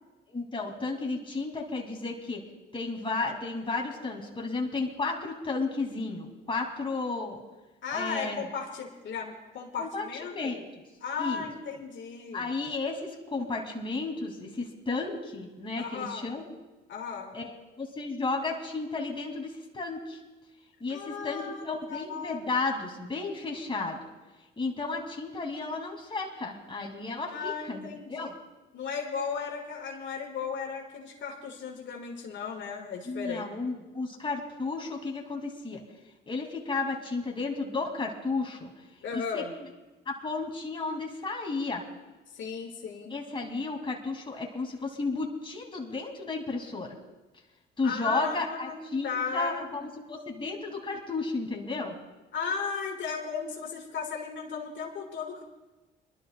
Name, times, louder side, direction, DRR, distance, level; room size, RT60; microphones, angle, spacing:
voice 1, 0.3-2.4 2.7-7.4 7.9-8.4 9.8-10.6 11.2-11.5 12.3-16.6 17.3-20.2 20.8-24.0 24.6-28.3 33.1-35.8 36.3-38.7 39.1-39.4 40.1-41.8 43.1-47.0 47.8-51.9, left 3 dB, 25° left, 0 dB, 2.4 m, -33 dB
voice 2, 7.8-10.6 11.0-12.5 15.8-16.3 16.9-17.4 20.9-21.6 21.9-22.4 27.3-28.3 28.7-33.5 39.0-39.5 42.3-43.2 47.8-49.7 52.3-55.4, left 6 dB, 70° left, 0 dB, 1.7 m, -35 dB
26.0 x 12.0 x 2.3 m, 1.1 s
cardioid pair, 90°, 20 cm